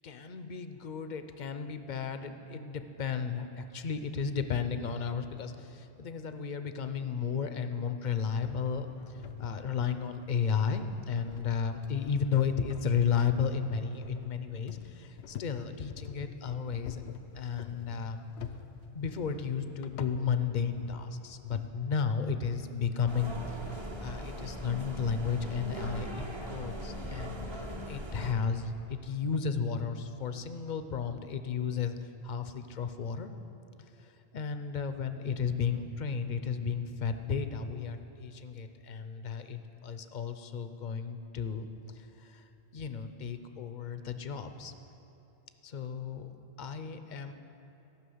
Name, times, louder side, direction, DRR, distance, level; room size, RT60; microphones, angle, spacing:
voice 1, 0.0-17.0 17.3-18.3 18.9-23.4 23.7-33.3 34.0-41.7 41.9-42.4 42.7-44.7 45.6-46.3 46.6-47.3, left 6 dB, 50° left, 9 dB, 0.7 m, -33 dB
sound 1, 8.4-21.7, left 8 dB, 80° left, 0.9 m, -47 dB
sound 2, 23.1-28.3, equal, 30° right, 0.8 m, -40 dB
15.0 x 6.1 x 7.8 m, 3.0 s
omnidirectional pair, 1.1 m